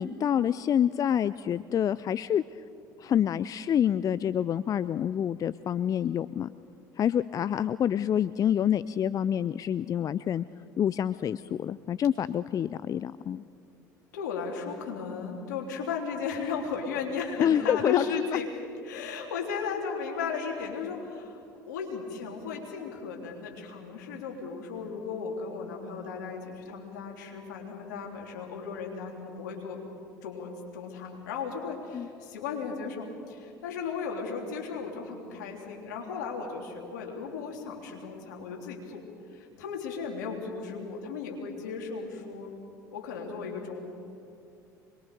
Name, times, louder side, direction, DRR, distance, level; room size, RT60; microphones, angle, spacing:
voice 1, 0.0-2.6 3.0-6.5 7.0-10.4 10.8-13.4 17.4-18.0 18.3-18.4 31.9-32.1, left 9 dB, 40° left, 17 dB, 0.5 m, -27 dB
voice 2, 14.1-29.8 30.2-42.5 42.9-43.8, left 5 dB, 75° left, 1 dB, 3.4 m, -36 dB
25.0 x 21.5 x 6.8 m, 2.6 s
hypercardioid pair, 70°, 10 cm